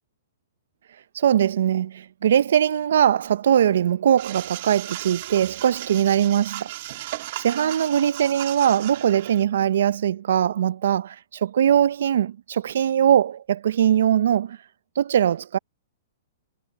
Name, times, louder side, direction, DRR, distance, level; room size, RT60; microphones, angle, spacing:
voice 1, 1.1-6.7 7.4-14.6 15.0-15.6, right 9 dB, 75° right, 0.5 m, -21 dB
sound 1, 4.2-9.4, right 17 dB, 55° right, 2.4 m, -36 dB
hypercardioid pair, 140°, 0 cm